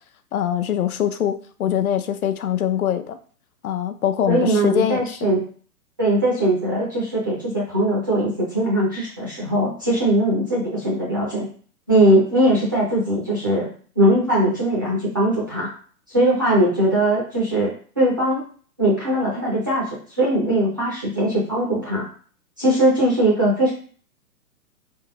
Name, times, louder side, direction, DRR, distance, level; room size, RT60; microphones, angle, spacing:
voice 1, 0.3-1.3 1.6-3.2 3.6-5.3, left 10 dB, 65° left, 8 dB, 0.7 m, -23 dB
voice 2, 4.3-5.4 6.0-11.5 11.9-13.7 14.0-15.7 16.1-18.4 18.8-22.1 22.6-23.7, right 1 dB, 15° right, -6 dB, 0.5 m, -20 dB
4.3 x 3.6 x 2.9 m, 0.44 s
hypercardioid pair, 160°, 47 cm